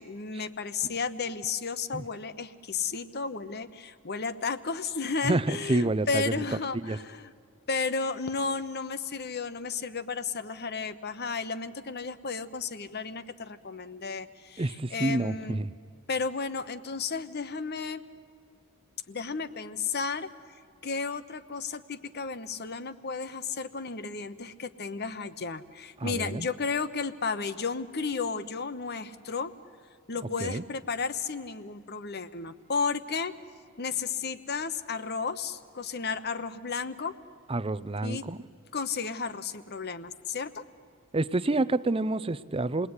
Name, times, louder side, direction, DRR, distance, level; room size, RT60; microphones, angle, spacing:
voice 1, 0.0-7.3 7.7-15.6 16.1-18.0 19.1-20.3 20.8-29.5 30.1-33.3 33.8-37.1 38.0-38.3 38.7-40.6, left 4 dB, 50° left, 13 dB, 1.0 m, -33 dB
voice 2, 5.2-6.4 6.8-7.0 14.6-15.7 26.0-26.5 30.4-30.6 37.5-38.4 41.1-42.9, right 2 dB, 25° right, 17 dB, 0.6 m, -28 dB
28.5 x 20.0 x 9.7 m, 2.3 s
head